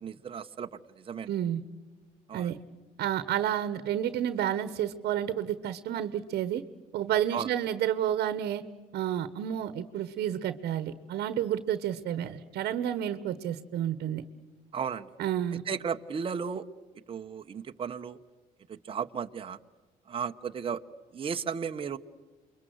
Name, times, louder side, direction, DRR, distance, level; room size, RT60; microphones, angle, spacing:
voice 1, 0.0-1.3 2.3-2.6 7.3-7.5 14.7-15.1 15.7-16.6 17.1-18.2 18.7-19.6 20.1-20.8 21.1-22.0, right 6 dB, 35° right, 6 dB, 1.0 m, -34 dB
voice 2, 1.3-1.6 2.3-2.6 3.0-6.6 6.9-8.6 8.9-14.2 15.2-15.6, right 10 dB, 70° right, 13 dB, 1.2 m, -30 dB
28.5 x 23.0 x 7.9 m, 1.3 s
cardioid pair, 110°, 17 cm